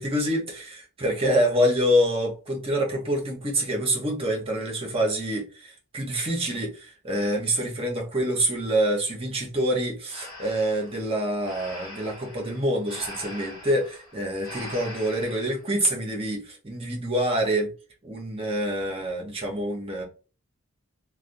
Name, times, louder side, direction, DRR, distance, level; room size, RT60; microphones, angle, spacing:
voice 1, 0.0-17.7 18.0-20.0, equal, 25° right, 0.9 m, -26 dB
Breathing, 10.1-15.6, left 1 dB, 20° left, 1.6 m, -42 dB
3.2 x 2.3 x 2.6 m
head